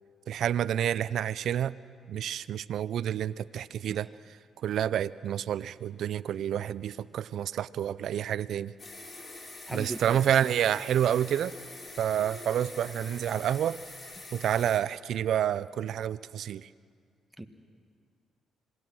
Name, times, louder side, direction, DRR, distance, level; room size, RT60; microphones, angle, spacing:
voice 1, 0.3-1.8 2.1-8.7 9.7-11.5 12.0-13.8 14.3-16.7, right 10 dB, 70° right, 18 dB, 0.5 m, -29 dB
sound 1, 8.8-14.8, left 2 dB, 35° left, 4.3 m, -45 dB
voice 2, 9.7-10.2 17.4-17.5, right 2 dB, 10° right, 6 dB, 1.9 m, -37 dB
26.5 x 19.5 x 6.2 m, 2.1 s
supercardioid pair, 60°, 0 cm